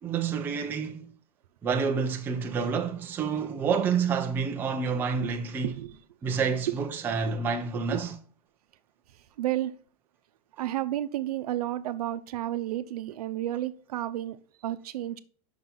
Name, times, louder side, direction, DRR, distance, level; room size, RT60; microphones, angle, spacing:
voice 1, 0.0-1.1 1.6-5.7 6.2-8.1, right 6 dB, 10° right, 0.5 m, -28 dB
voice 2, 5.6-6.0 6.7-6.8 7.3-7.4 7.9-8.0 9.4-9.7 10.6-15.2, right 13 dB, 80° right, 0.7 m, -31 dB
5.8 x 5.7 x 3.8 m
supercardioid pair, 170°, 19 cm